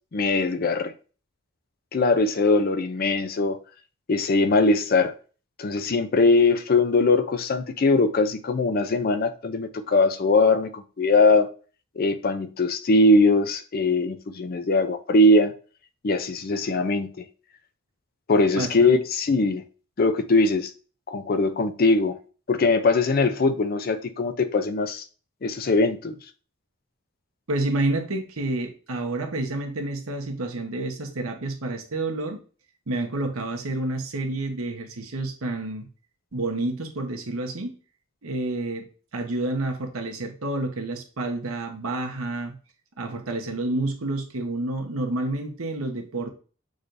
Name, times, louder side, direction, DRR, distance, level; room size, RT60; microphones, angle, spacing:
voice 1, 0.1-0.9 1.9-3.6 4.1-5.1 5.6-11.5 12.0-15.5 16.0-17.2 18.3-19.6 20.0-20.7 21.1-22.2 22.5-25.0 25.4-26.2, left 2 dB, 45° left, 0.4 m, -21 dB
voice 2, 18.5-19.0 27.5-32.4 32.9-35.9 36.3-37.7 38.2-38.8 39.1-42.5 43.0-46.3, right 2 dB, 80° right, 1.0 m, -29 dB
6.2 x 3.3 x 2.6 m
head